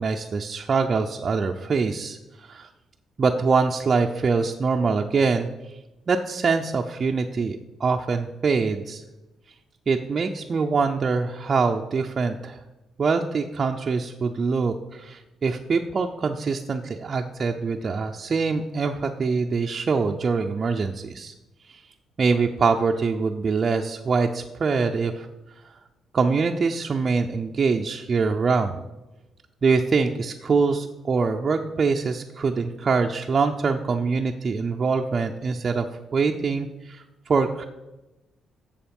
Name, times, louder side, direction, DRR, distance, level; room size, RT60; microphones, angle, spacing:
voice 1, 0.0-2.7 3.2-5.5 6.1-9.0 9.9-12.6 13.0-21.3 21.7-21.8 22.2-25.3 25.6-25.7 26.1-28.8 29.6-35.9 36.1-37.6, right 4 dB, 40° right, 2 dB, 0.6 m, -24 dB
7.1 x 7.1 x 5.3 m, 1.0 s
cardioid pair, 90°, 0 cm